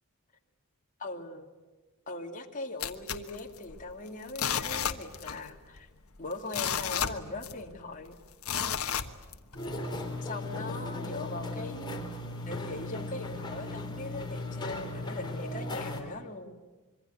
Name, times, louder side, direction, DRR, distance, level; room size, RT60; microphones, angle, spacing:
voice 1, 1.0-1.5 2.1-5.9 6.2-8.1 10.2-12.1 12.5-16.5, left 2 dB, 35° left, 1 dB, 2.6 m, -40 dB
sound 1, 2.8-3.9 4.3-5.5 5.8-5.9 6.3-7.8 8.4-9.7 10.1-10.2, left 8 dB, 75° left, 1.4 m, -32 dB
sound 2, 9.6-16.0, left 2 dB, 20° left, 3.8 m, -37 dB
26.0 x 24.0 x 9.5 m, 1.2 s
head